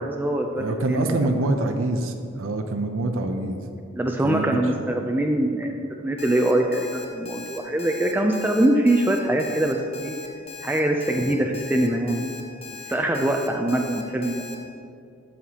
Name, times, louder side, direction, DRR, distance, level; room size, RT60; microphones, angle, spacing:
voice 1, 0.0-1.5 4.0-10.1 10.6-12.3 12.9-14.5, right 1 dB, 10° right, 1 dB, 0.3 m, -23 dB
voice 2, 0.6-3.6 4.2-4.8, right 2 dB, 75° right, 6 dB, 0.5 m, -26 dB
Alarm, 6.2-14.5, left 4 dB, 30° left, 0.6 m, -40 dB
12.5 x 5.7 x 2.8 m, 2.5 s
head